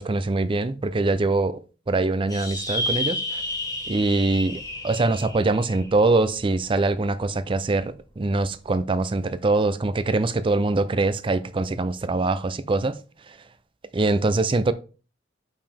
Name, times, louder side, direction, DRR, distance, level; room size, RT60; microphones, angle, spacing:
voice 1, 0.0-1.6 1.9-3.4 3.9-13.0 13.3-13.4 13.9-14.7, right 3 dB, 30° right, 0.5 m, -23 dB
sound 1, 2.3-7.0, left 1 dB, 20° left, 1.5 m, -31 dB
6.9 x 5.6 x 3.5 m
head